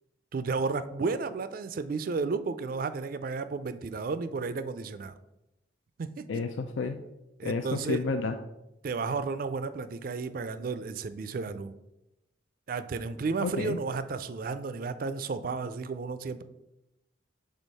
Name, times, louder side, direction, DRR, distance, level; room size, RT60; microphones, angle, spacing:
voice 1, 0.3-5.1 6.0-6.2 7.4-8.0 8.8-11.7 12.7-16.4, right 4 dB, 50° right, 13 dB, 0.4 m, -33 dB
voice 2, 6.3-7.0 7.4-8.4 13.4-13.8, left 4 dB, 85° left, 7 dB, 0.4 m, -30 dB
6.3 x 3.5 x 5.3 m, 0.90 s
head